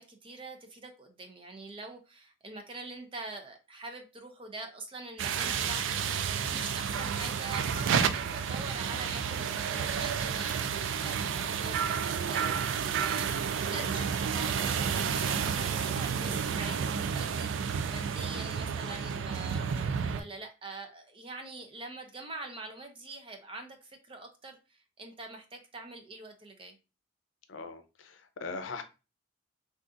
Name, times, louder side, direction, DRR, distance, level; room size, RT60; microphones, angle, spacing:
voice 1, 0.0-13.3 13.6-26.8, right 2 dB, 25° right, 4 dB, 0.5 m, -44 dB
sound 1, 5.2-20.2, right 7 dB, 80° right, 0.3 m, -31 dB
voice 2, 27.5-28.8, left 4 dB, 85° left, 8 dB, 0.5 m, -40 dB
3.8 x 2.5 x 2.4 m, 0.30 s
head